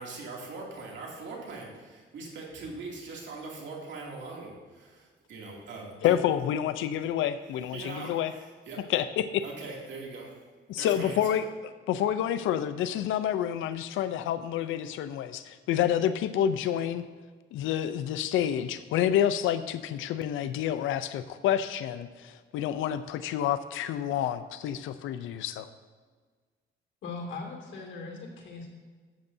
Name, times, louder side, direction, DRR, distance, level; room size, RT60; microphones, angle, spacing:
voice 1, 0.0-6.2 7.7-8.9 9.4-10.4 10.8-11.4, right 3 dB, 65° right, -2 dB, 2.5 m, -41 dB
voice 2, 6.0-8.3 8.9-9.4 10.7-11.4 11.9-17.0 17.5-25.7, left 10 dB, 85° left, 12 dB, 0.5 m, -28 dB
voice 3, 27.0-28.7, left 3 dB, 70° left, 0 dB, 2.4 m, -39 dB
13.0 x 8.0 x 2.7 m, 1.5 s
cardioid pair, 90°, 20 cm